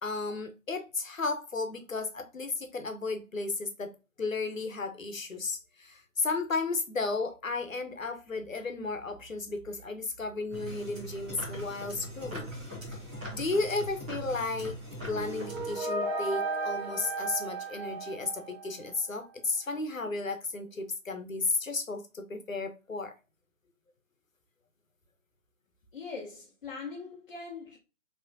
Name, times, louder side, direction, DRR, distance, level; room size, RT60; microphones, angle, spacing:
voice 1, 0.0-3.9 4.2-12.5 13.3-14.7 15.1-23.1, left 3 dB, 85° left, 1.0 m, -33 dB
sound 1, 10.5-15.8, equal, 5° right, 0.6 m, -41 dB
sound 2, 15.0-19.0, right 2 dB, 30° right, 2.0 m, -35 dB
voice 2, 25.9-27.8, left 4 dB, 45° left, 1.0 m, -41 dB
5.0 x 3.1 x 2.6 m
figure-of-eight pair, 145°, 39 cm